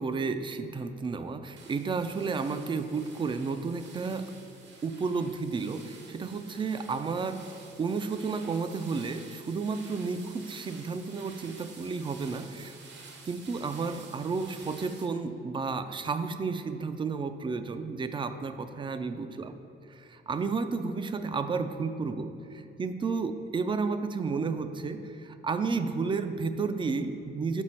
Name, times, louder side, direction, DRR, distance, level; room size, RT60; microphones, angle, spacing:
voice 1, 0.0-4.3 4.8-12.8 13.2-19.5 19.9-27.6, right 4 dB, 25° right, 10 dB, 0.3 m, -32 dB
sound 1, 1.6-15.1, right 4 dB, 65° right, 0.9 m, -51 dB
6.2 x 4.9 x 4.3 m, 2.7 s
cardioid pair, 90°, 20 cm